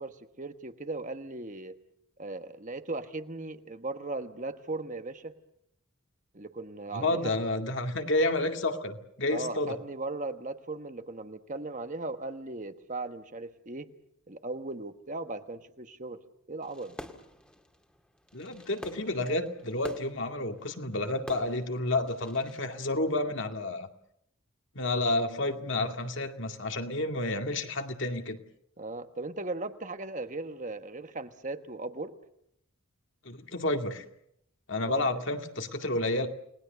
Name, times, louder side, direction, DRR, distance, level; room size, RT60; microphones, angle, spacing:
voice 1, 0.0-1.8 2.2-5.3 6.3-7.4 9.3-13.9 14.3-16.2 16.5-17.1 28.8-32.2 34.9-35.1, right 2 dB, 35° right, 8 dB, 1.3 m, -37 dB
voice 2, 6.9-9.8 18.3-23.9 24.8-28.4 33.3-34.0 34.7-36.3, left 2 dB, 55° left, 5 dB, 2.2 m, -30 dB
Fireworks, 16.6-22.6, equal, 5° left, 2.1 m, -48 dB
30.0 x 20.0 x 6.9 m, 0.74 s
head